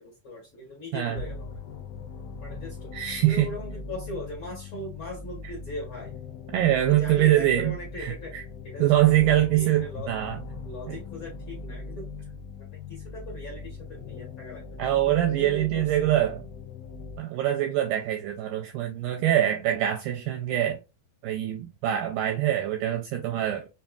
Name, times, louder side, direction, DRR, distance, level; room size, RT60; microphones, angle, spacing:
voice 1, 0.0-1.6 2.4-2.9 3.2-6.2 6.8-8.3 8.6-10.1 10.6-12.1 12.9-14.7 15.0-16.1, left 1 dB, 50° left, 1.6 m, -39 dB
sound 1, 1.2-17.2, left 3 dB, 80° left, 2.0 m, -40 dB
voice 2, 2.9-3.5 5.4-5.5 6.5-8.4 8.8-10.4 10.9-11.0 14.8-16.4 17.2-20.8 21.2-23.7, right 13 dB, 80° right, 1.9 m, -24 dB
5.4 x 2.9 x 2.3 m
omnidirectional pair, 4.3 m